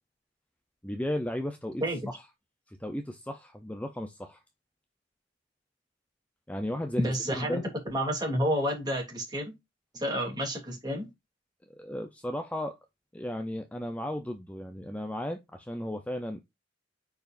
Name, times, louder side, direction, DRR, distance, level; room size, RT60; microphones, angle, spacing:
voice 1, 0.8-2.2 2.7-4.4 6.5-7.7 11.8-12.8 13.1-16.4, left 1 dB, 10° left, 0.6 m, -35 dB
voice 2, 7.0-9.5 9.9-11.1, equal, 20° right, 2.9 m, -30 dB
9.3 x 4.8 x 2.5 m
head